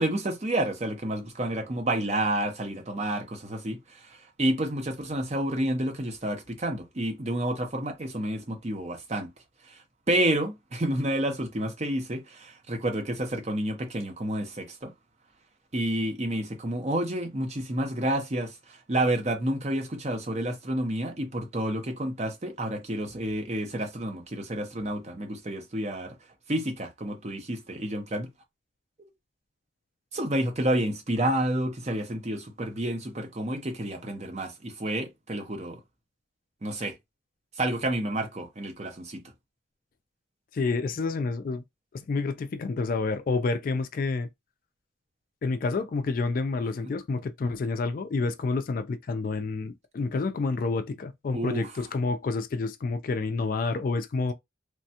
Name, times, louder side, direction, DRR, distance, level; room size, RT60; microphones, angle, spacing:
voice 1, 0.0-9.3 9.6-14.9 15.7-26.2 26.5-28.3 30.1-35.8 36.6-37.0 37.6-39.2 46.8-46.9 51.3-51.7, right 1 dB, 35° right, 0.7 m, -30 dB
voice 2, 40.5-41.6 41.9-44.3 45.4-54.3, left 3 dB, 45° left, 0.3 m, -29 dB
3.2 x 2.2 x 2.8 m
head